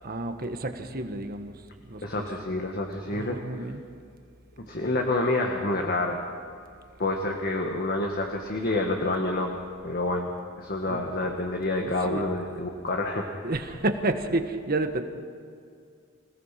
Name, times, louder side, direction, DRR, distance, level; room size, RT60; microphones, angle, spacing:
voice 1, 0.0-2.3 3.0-3.8 10.9-11.4 11.8-12.4 13.4-15.0, right 2 dB, 45° right, 7 dB, 1.5 m, -31 dB
voice 2, 2.0-3.4 4.7-6.2 7.0-9.5 9.8-13.4, left 2 dB, 50° left, 2 dB, 1.7 m, -28 dB
26.5 x 17.5 x 5.9 m, 2.3 s
head